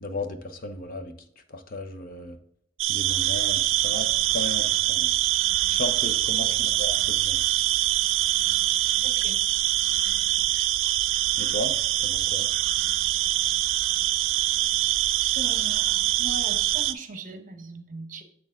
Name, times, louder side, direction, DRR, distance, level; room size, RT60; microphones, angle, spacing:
voice 1, 0.0-1.1 1.5-2.4 2.9-5.1 5.7-7.4 11.4-11.7 12.0-12.5, left 2 dB, 45° left, 8 dB, 0.8 m, -35 dB
sound 1, 2.8-16.9, right 14 dB, 85° right, 0.5 m, -24 dB
voice 2, 6.4-6.7 9.0-9.4 13.6-13.7 15.1-18.2, right 3 dB, 45° right, 7 dB, 1.0 m, -40 dB
7.8 x 6.3 x 3.6 m, 0.71 s
head